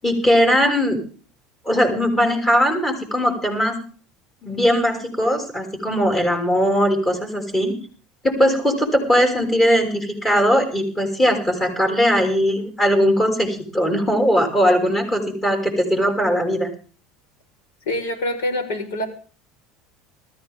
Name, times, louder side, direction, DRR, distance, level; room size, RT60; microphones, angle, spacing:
voice 1, 0.0-1.0 1.6-3.8 4.4-7.7 8.2-16.7, equal, 20° left, 3 dB, 6.5 m, -19 dB
voice 2, 17.8-19.1, left 1 dB, 85° left, 4 dB, 5.2 m, -25 dB
21.5 x 14.5 x 3.8 m, 0.39 s
supercardioid pair, 110°, 0 cm